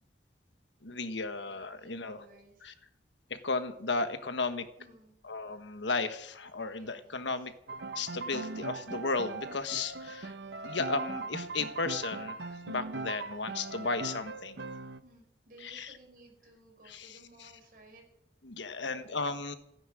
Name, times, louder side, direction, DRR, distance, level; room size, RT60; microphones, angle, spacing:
voice 1, 0.8-2.2 2.6-2.7 3.3-4.7 5.2-7.5 7.9-10.3 10.6-14.6 15.6-15.9 16.9-17.5 18.4-19.6, left 3 dB, 90° left, 10 dB, 1.3 m, -35 dB
voice 2, 1.5-2.7 4.8-5.1 6.7-7.5 15.0-18.1 18.8-19.2, right 2 dB, 50° right, 2 dB, 5.5 m, -57 dB
Piano, 7.7-15.0, right 3 dB, 70° right, 0.8 m, -40 dB
15.0 x 9.8 x 7.8 m, 0.76 s
head